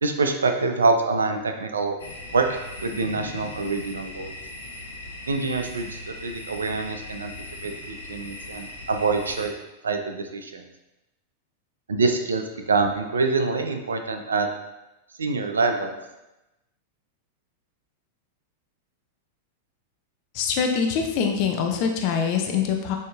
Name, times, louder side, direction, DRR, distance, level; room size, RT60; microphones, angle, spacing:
voice 1, 0.0-2.0 2.3-4.3 5.3-7.3 7.6-9.5 9.8-10.6 11.9-14.5 15.2-15.9, right 3 dB, 90° right, 6 dB, 0.5 m, -25 dB
sound 1, 2.0-9.5, left 2 dB, 85° left, 0.8 m, -39 dB
voice 2, 20.3-23.0, left 6 dB, 50° left, 3 dB, 0.5 m, -24 dB
6.3 x 2.8 x 2.4 m, 0.97 s
hypercardioid pair, 100°, 0 cm